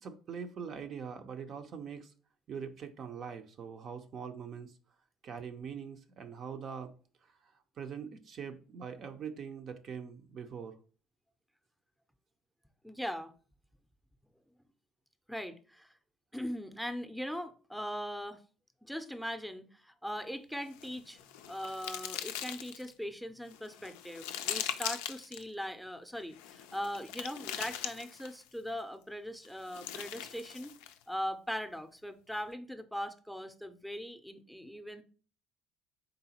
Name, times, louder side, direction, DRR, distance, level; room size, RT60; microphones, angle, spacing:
voice 1, 0.0-2.1 2.5-4.8 5.2-6.9 7.2-10.8, right 6 dB, 55° right, 0.5 m, -43 dB
voice 2, 12.8-13.3 15.3-15.9 16.3-18.4 18.8-30.7 31.1-35.0, equal, ahead, 0.5 m, -40 dB
sound 1, 20.7-22.9 23.5-25.4 26.3-28.5 29.4-31.0, left 10 dB, 80° left, 0.3 m, -41 dB
3.9 x 3.7 x 2.8 m
hypercardioid pair, 60°, 0 cm